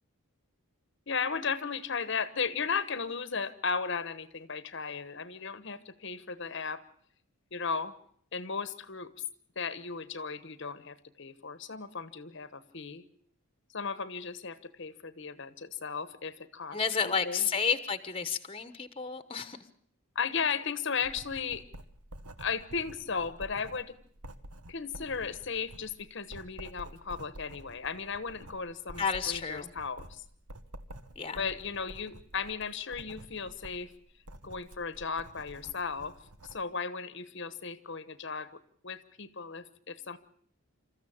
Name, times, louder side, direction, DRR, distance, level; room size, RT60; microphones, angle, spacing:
voice 1, 1.1-6.8 7.5-7.9 8.3-9.1 9.6-13.0 13.7-17.5 20.1-21.6 22.4-23.9 24.7-30.2 31.3-33.9 34.4-36.2 36.5-40.2, left 5 dB, 55° left, 14 dB, 1.1 m, -36 dB
voice 2, 16.7-19.6 29.0-29.7 31.2-31.4, left 6 dB, 25° left, 12 dB, 1.1 m, -31 dB
Writing, 21.0-36.6, right 1 dB, 90° right, 1.5 m, -49 dB
27.5 x 14.0 x 8.7 m, 0.62 s
head